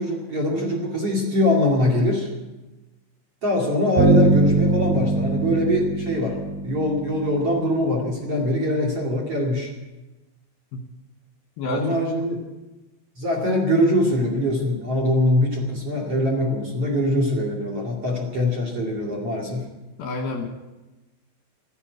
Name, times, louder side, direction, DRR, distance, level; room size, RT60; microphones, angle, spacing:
voice 1, 0.0-2.3 3.4-6.4 6.6-9.7 11.7-12.4 13.2-19.7, left 1 dB, 40° right, 1 dB, 2.5 m, -23 dB
Bass guitar, 4.0-7.8, right 3 dB, 70° right, 4.1 m, -22 dB
voice 2, 11.6-12.0 20.0-20.5, left 2 dB, 70° left, 3 dB, 2.5 m, -28 dB
15.0 x 10.0 x 9.4 m, 1.1 s
omnidirectional pair, 5.4 m